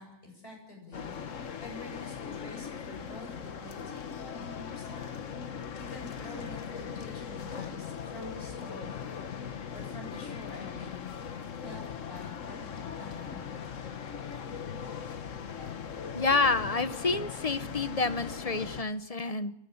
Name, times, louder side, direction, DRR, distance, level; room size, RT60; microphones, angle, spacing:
voice 1, 0.0-5.1 5.8-9.3 9.7-11.2 11.6-13.4, left 2 dB, 50° left, 0 dB, 8.3 m, -48 dB
sound 1, 0.9-18.8, left 7 dB, 85° left, 1.5 m, -39 dB
voice 2, 16.1-19.5, left 3 dB, 35° left, 12 dB, 0.8 m, -28 dB
29.0 x 13.0 x 7.1 m, 0.81 s
omnidirectional pair, 1.3 m